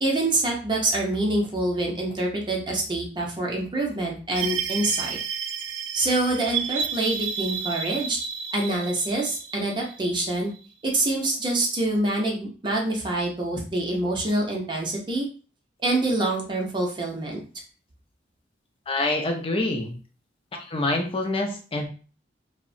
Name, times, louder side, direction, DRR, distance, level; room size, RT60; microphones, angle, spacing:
voice 1, 0.0-5.2 5.9-8.2 8.5-10.5 10.8-15.3 15.8-17.4, right 2 dB, 25° right, -1 dB, 0.5 m, -26 dB
sound 1, 4.4-10.6, right 7 dB, 80° right, 0.3 m, -31 dB
voice 2, 18.9-19.9 20.5-21.9, left 2 dB, 30° left, 3 dB, 0.5 m, -26 dB
2.8 x 2.0 x 2.5 m, 0.38 s
head